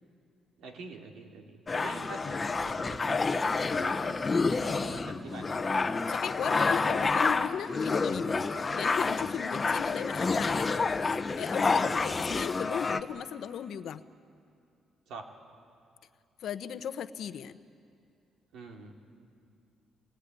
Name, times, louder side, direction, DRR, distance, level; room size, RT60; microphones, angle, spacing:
voice 1, 0.6-5.8 11.8-12.0 15.1-15.3 18.5-18.9, right 3 dB, 80° right, 2 dB, 2.9 m, -45 dB
sound 1, 1.7-13.0, left 4 dB, 30° left, 1.0 m, -29 dB
voice 2, 6.1-10.8 11.1-14.0 16.4-17.6, left 9 dB, 70° left, 12 dB, 0.9 m, -36 dB
26.0 x 20.5 x 9.6 m, 2.4 s
cardioid pair, 90°, 0 cm